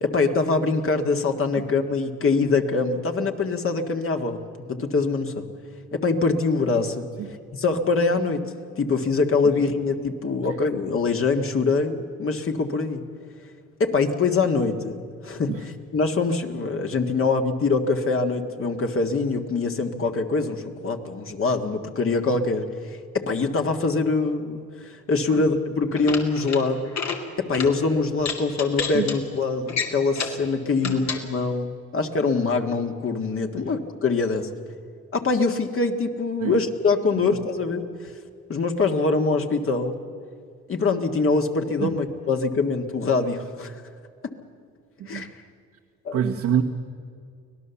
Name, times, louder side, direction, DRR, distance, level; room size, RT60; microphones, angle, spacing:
voice 1, 0.0-5.5 5.9-7.1 7.5-8.5 8.8-13.0 13.8-26.9 27.4-34.5 35.1-37.9 38.5-39.9 40.7-43.8 45.1-45.3 46.1-46.2, left 4 dB, 45° left, 5 dB, 1.9 m, -24 dB
sound 1, 26.0-26.6 26.9-27.2 27.5-27.7 28.2-29.2 29.7-30.4 30.8-31.2, left 6 dB, 60° left, 2.6 m, -29 dB
voice 2, 46.1-46.6, right 9 dB, 75° right, 1 dB, 1.3 m, -26 dB
24.5 x 18.0 x 7.1 m, 2.2 s
cardioid pair, 90°, 30 cm